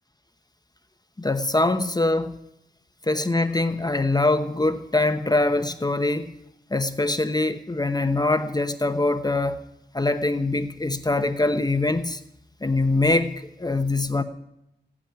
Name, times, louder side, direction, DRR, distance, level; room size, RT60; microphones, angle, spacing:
voice 1, 1.2-2.4 3.1-6.3 6.7-9.6 9.9-12.2 12.6-13.3 13.6-14.2, left 2 dB, 25° left, 0.9 m, -23 dB
16.0 x 8.8 x 9.9 m
wide cardioid pair, 115°, 17 cm